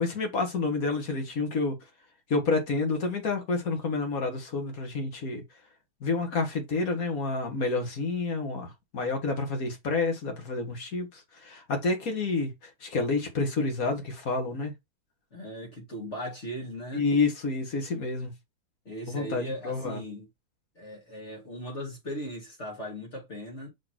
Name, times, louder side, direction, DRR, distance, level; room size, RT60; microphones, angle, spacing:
voice 1, 0.0-1.7 2.3-5.4 6.0-12.5 12.8-14.7 16.9-18.3 19.1-20.0, left 3 dB, 60° left, 2.4 m, -29 dB
voice 2, 15.3-17.0 18.8-20.3 20.8-23.7, equal, 45° left, 3.2 m, -38 dB
6.1 x 4.2 x 4.6 m
omnidirectional pair, 1.7 m